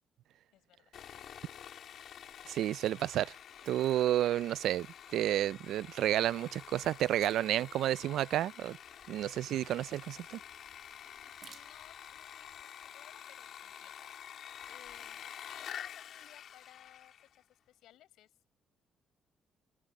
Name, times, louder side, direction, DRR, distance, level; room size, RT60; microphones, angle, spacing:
voice 1, 0.5-0.9 10.9-18.5, left 14 dB, 85° left, 6.3 m, -62 dB
Sawing, 0.9-17.4, left 9 dB, 70° left, 3.3 m, -49 dB
sound 1, 2.1-12.6, right 7 dB, 60° right, 2.5 m, -65 dB
voice 2, 2.5-3.3 3.7-4.9 5.1-8.8 9.1-10.4, right 12 dB, 80° right, 0.3 m, -31 dB
cardioid pair, 90°, 0 cm